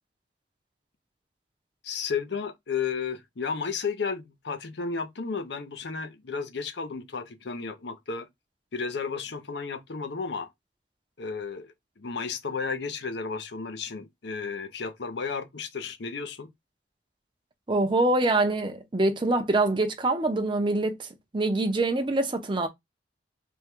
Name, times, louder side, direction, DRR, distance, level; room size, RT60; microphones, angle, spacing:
voice 1, 1.8-8.3 8.7-10.5 11.2-16.5, left 5 dB, 65° left, 0.6 m, -33 dB
voice 2, 17.7-21.1 21.3-22.7, right 2 dB, 25° right, 0.6 m, -25 dB
3.6 x 2.2 x 4.4 m
head